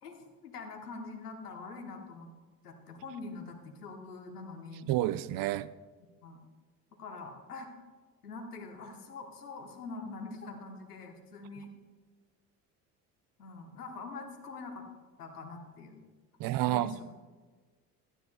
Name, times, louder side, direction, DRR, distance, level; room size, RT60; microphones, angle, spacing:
voice 1, 0.0-2.3 2.6-4.9 6.2-6.4 7.0-7.7 8.2-11.7 13.4-14.9 15.2-16.0 16.6-17.0, left 3 dB, 85° left, 3 dB, 1.2 m, -44 dB
voice 2, 4.9-5.7 16.4-17.0, right 15 dB, 50° right, 17 dB, 0.6 m, -29 dB
16.5 x 12.0 x 2.3 m, 1.3 s
figure-of-eight pair, 55°, 45 cm